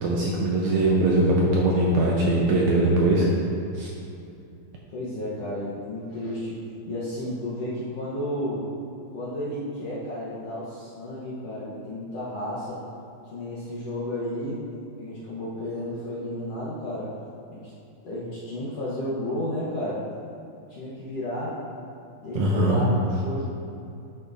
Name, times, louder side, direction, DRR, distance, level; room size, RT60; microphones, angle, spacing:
voice 1, 0.0-3.3 3.8-3.9 22.4-22.8, right 2 dB, 75° right, -3 dB, 1.8 m, -21 dB
voice 2, 4.9-8.7 9.1-12.8 13.3-14.6 15.0-17.1 17.5-17.7 18.0-20.0 20.7-21.6 22.2-23.4, left 1 dB, 65° left, -8 dB, 1.7 m, -32 dB
10.5 x 6.6 x 2.6 m, 2.6 s
omnidirectional pair, 4.0 m